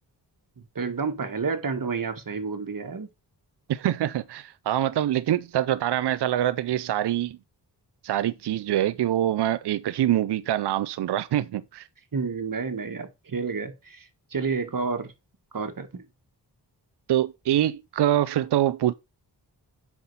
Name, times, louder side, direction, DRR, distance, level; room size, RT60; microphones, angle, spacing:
voice 1, 0.8-3.1 12.1-15.1 15.5-16.1, right 5 dB, 50° right, 1.8 m, -30 dB
voice 2, 3.7-7.4 8.0-11.9 17.1-18.9, right 12 dB, 70° right, 0.5 m, -25 dB
7.7 x 6.0 x 5.6 m
cardioid pair, 65°, 41 cm